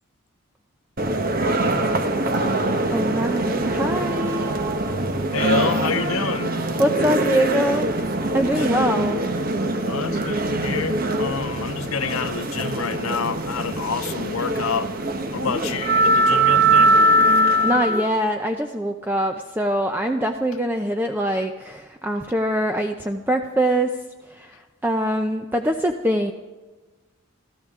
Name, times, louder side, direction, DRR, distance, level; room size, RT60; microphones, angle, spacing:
sound 1, 1.0-18.1, right 1 dB, 40° right, 1.2 m, -22 dB
voice 1, 2.9-4.5 6.6-7.9 8.3-9.3 15.5-15.9 17.2-24.0 24.3-26.3, right 1 dB, 10° right, 0.6 m, -24 dB
voice 2, 5.3-6.5 8.5-8.7 9.8-14.9 15.3-16.9, left 6 dB, 80° left, 0.6 m, -28 dB
27.5 x 14.0 x 3.7 m
head